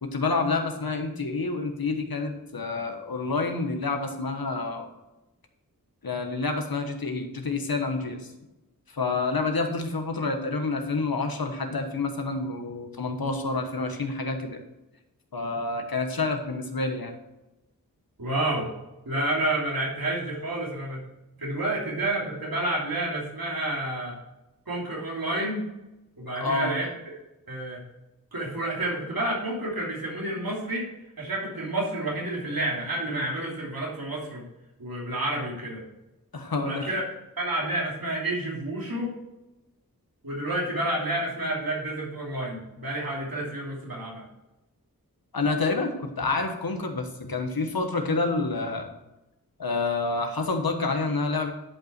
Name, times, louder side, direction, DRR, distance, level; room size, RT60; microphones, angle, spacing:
voice 1, 0.0-4.9 6.0-8.3 8.9-14.6 15.3-17.1 26.4-26.8 36.3-36.9 45.3-48.9 49.6-51.5, left 3 dB, 85° left, 4 dB, 1.3 m, -28 dB
voice 2, 18.2-18.7 19.0-21.1 21.4-24.2 24.7-25.7 26.2-26.9 27.5-27.8 28.3-30.9 31.2-34.4 34.8-35.8 36.5-37.0 37.4-39.1 40.2-44.2, right 1 dB, 75° right, -4 dB, 3.0 m, -29 dB
11.5 x 5.5 x 4.4 m, 0.97 s
wide cardioid pair, 45°, 35 cm